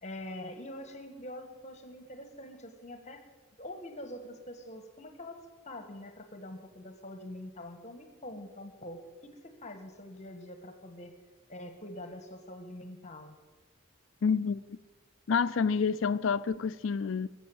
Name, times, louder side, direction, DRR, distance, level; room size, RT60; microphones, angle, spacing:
voice 1, 0.0-3.2 3.6-11.1 11.5-13.4, left 1 dB, 35° left, 1.4 m, -45 dB
voice 2, 14.2-14.6 15.3-17.3, left 5 dB, 75° left, 0.4 m, -28 dB
21.5 x 7.9 x 7.2 m
head